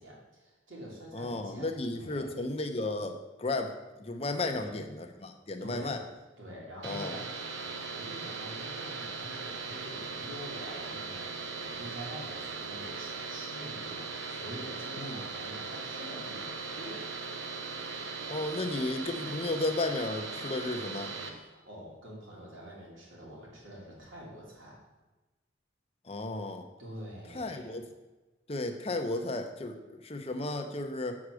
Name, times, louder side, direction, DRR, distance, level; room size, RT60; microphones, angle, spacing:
voice 1, 0.0-2.3 4.5-4.7 5.6-6.0 6.4-7.3 7.6-17.1 21.3-24.8 26.8-27.8, equal, 90° right, -4 dB, 2.9 m, -46 dB
voice 2, 1.1-6.0 6.8-7.2 15.0-15.2 18.3-21.1 26.0-26.7 27.3-27.9 28.5-31.2, left 2 dB, 30° left, 5 dB, 0.7 m, -34 dB
sound 1, 6.8-21.3, right 4 dB, 70° right, 0.9 m, -39 dB
7.1 x 4.9 x 6.3 m, 1.1 s
head